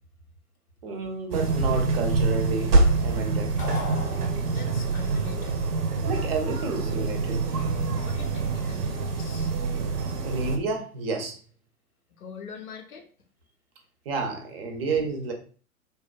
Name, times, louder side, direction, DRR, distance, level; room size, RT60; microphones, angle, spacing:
voice 1, 0.8-2.7 3.0-3.5 6.0-7.4 9.7-9.8 10.2-11.4 14.1-15.3, right 3 dB, 40° right, 3 dB, 0.6 m, -30 dB
sound 1, 1.3-10.6, right 3 dB, 80° right, 0.6 m, -25 dB
sound 2, 3.6-4.9, left 1 dB, 15° left, 0.4 m, -37 dB
voice 2, 4.4-5.6 7.8-9.5 12.2-13.1, left 6 dB, 65° left, 4 dB, 0.8 m, -43 dB
3.2 x 2.2 x 2.2 m, 0.40 s
figure-of-eight pair, 105°, 46 cm